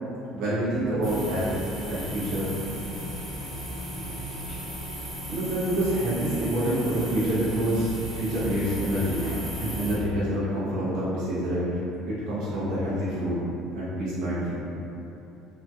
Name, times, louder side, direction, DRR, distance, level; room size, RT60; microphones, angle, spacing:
voice 1, 0.3-1.6 1.9-2.5 5.3-9.3 9.6-11.7 12.1-13.4 13.7-14.7, right 1 dB, 65° right, -10 dB, 0.8 m, -27 dB
sound 1, 1.0-9.9, equal, 5° right, 0.7 m, -35 dB
3.0 x 2.6 x 2.3 m, 2.9 s
cardioid pair, 175°, 0 cm